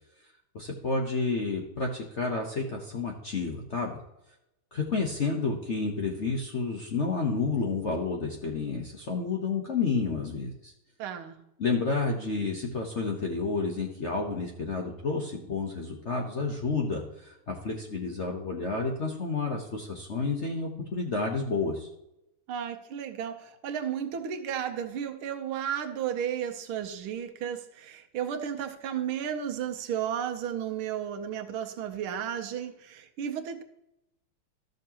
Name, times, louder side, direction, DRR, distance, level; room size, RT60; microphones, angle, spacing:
voice 1, 0.5-4.0 4.7-10.7 11.6-21.9, left 4 dB, 50° left, 1 dB, 0.8 m, -30 dB
voice 2, 11.0-11.4 22.5-33.6, right 9 dB, 80° right, 6 dB, 1.7 m, -33 dB
13.0 x 6.5 x 2.9 m, 0.88 s
omnidirectional pair, 2.3 m